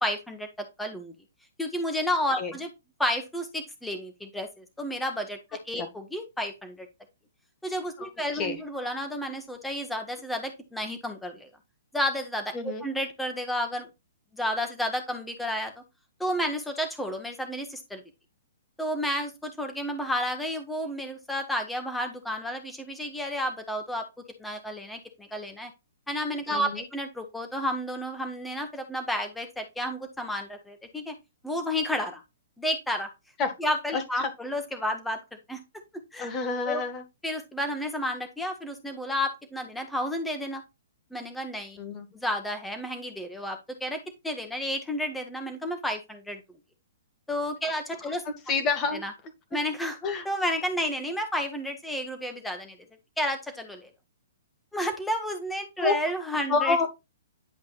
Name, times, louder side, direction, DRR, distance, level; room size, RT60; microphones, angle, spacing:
voice 1, 0.0-1.1 1.6-2.7 3.0-6.9 7.6-11.5 11.9-12.5 12.8-13.9 14.3-15.8 16.2-18.0 18.8-24.1 24.4-25.7 26.1-31.1 31.4-32.2 32.6-33.1 33.6-35.2 35.5-35.6 36.1-36.3 36.7-36.8 37.2-40.6 41.1-41.8 42.1-46.4 47.3-48.2 49.0-49.1 49.5-50.0 50.2-52.8 53.2-53.9 54.7-56.9, equal, 5° left, 6 dB, 1.6 m, -31 dB
voice 2, 8.0-8.6 12.5-12.8 26.5-26.8 33.4-33.5 33.9-34.3 36.2-37.0 41.8-42.1 48.0-48.1 48.5-49.0 50.0-50.3 55.8-55.9 56.5-56.9, left 4 dB, 20° left, 7 dB, 2.0 m, -28 dB
10.5 x 5.1 x 2.5 m, 0.23 s
hypercardioid pair, 160°, 0 cm